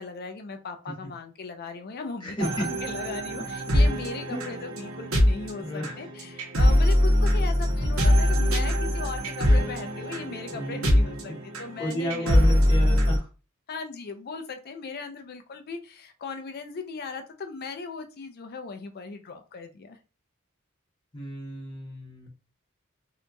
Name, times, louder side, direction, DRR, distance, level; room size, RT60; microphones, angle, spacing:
voice 1, 0.0-11.3 11.6-12.6 13.7-20.0, left 4 dB, 45° left, 7 dB, 0.4 m, -38 dB
voice 2, 2.2-2.7 4.3-4.5 5.6-6.1 10.5-11.4 11.8-13.3 21.1-22.3, equal, 20° left, -3 dB, 0.8 m, -33 dB
sound 1, 2.4-13.2, equal, 65° right, 0.9 m, -23 dB
2.8 x 2.6 x 2.2 m, 0.33 s
head